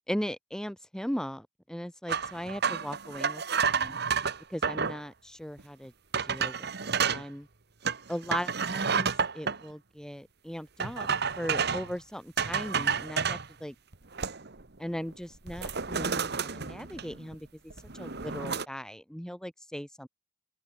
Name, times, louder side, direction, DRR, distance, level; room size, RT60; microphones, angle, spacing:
voice 1, 0.1-4.0 4.5-5.9 6.2-7.5 8.1-11.1 11.4-13.7 14.8-17.5 17.9-20.1, equal, 5° left, 1.3 m, -38 dB
sound 1, 2.1-5.0 5.6-5.7 6.1-7.2 7.8-9.6 10.8-11.9 12.4-13.5 13.9-14.6 14.9-15.1 15.5-17.3 17.7-18.6, right 6 dB, 60° right, 1.7 m, -30 dB
open air
head